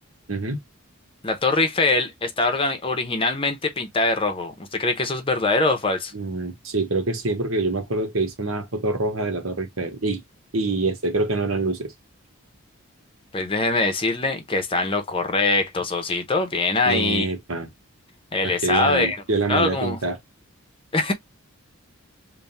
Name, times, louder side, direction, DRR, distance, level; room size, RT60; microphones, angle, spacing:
voice 1, 0.3-0.6 6.1-10.2 10.5-11.9 16.9-17.7 18.6-20.2, right 3 dB, 70° right, 1.2 m, -25 dB
voice 2, 1.2-6.1 13.3-17.3 18.3-19.2 19.5-20.0 20.9-21.1, left 3 dB, 25° left, 0.8 m, -23 dB
3.6 x 2.3 x 4.1 m
head